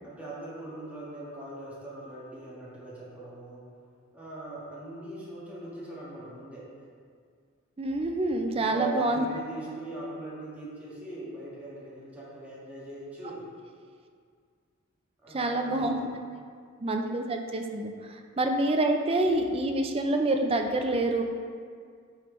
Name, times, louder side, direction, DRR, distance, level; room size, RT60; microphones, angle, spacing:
voice 1, 0.0-3.7 4.1-6.9 8.5-13.5 15.2-16.1, right 2 dB, 5° right, -8 dB, 1.4 m, -40 dB
voice 2, 7.8-9.3 15.3-16.1 16.8-21.2, right 2 dB, 25° right, 4 dB, 0.4 m, -27 dB
8.5 x 4.4 x 3.1 m, 2.1 s
head